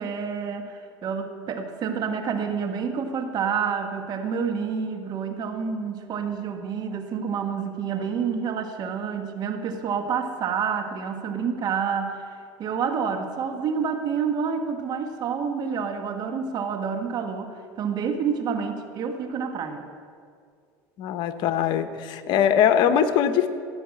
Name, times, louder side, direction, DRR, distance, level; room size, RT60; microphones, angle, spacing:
voice 1, 0.0-12.3 12.6-19.8, right 6 dB, 50° right, 6 dB, 1.4 m, -28 dB
voice 2, 21.0-23.5, left 9 dB, 60° left, 9 dB, 1.0 m, -21 dB
16.5 x 5.7 x 8.5 m, 2.2 s
supercardioid pair, 90°, 9 cm